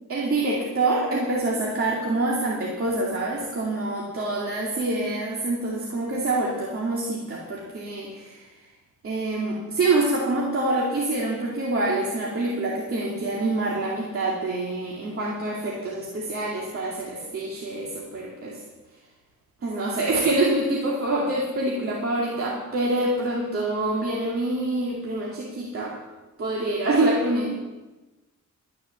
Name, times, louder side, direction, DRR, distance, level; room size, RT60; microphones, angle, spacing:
voice 1, 0.1-8.4 9.0-18.6 19.6-26.0 26.4-27.6, right 2 dB, 45° right, -4 dB, 2.5 m, -26 dB
12.5 x 10.5 x 6.9 m, 1.1 s
wide cardioid pair, 155°, 31 cm